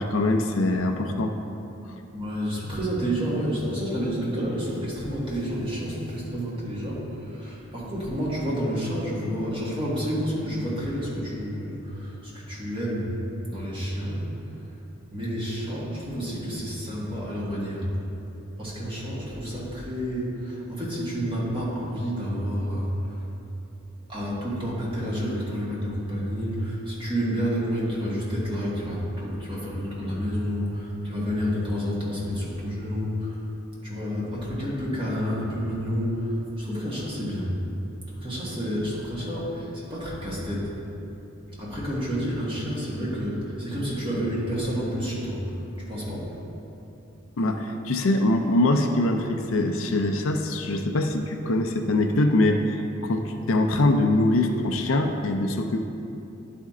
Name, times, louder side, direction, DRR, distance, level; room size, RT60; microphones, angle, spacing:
voice 1, 0.0-1.3 47.4-55.8, left 2 dB, 65° left, 4 dB, 0.5 m, -23 dB
voice 2, 2.1-13.2 13.5-14.3 15.1-17.9 18.6-23.1 24.1-33.4 33.8-37.5 38.1-40.7 41.6-45.4 45.9-46.4, equal, 25° right, -7 dB, 1.7 m, -29 dB
10.5 x 4.3 x 3.7 m, 2.9 s
head